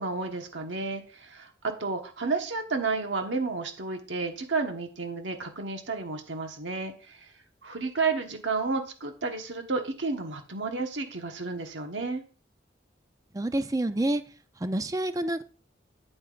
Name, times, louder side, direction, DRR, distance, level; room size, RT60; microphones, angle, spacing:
voice 1, 0.0-7.3 7.6-12.2, right 4 dB, 80° right, 4 dB, 1.3 m, -31 dB
voice 2, 13.3-14.2 14.6-15.4, right 1 dB, 20° right, 11 dB, 0.5 m, -28 dB
9.0 x 8.7 x 2.5 m, 0.35 s
head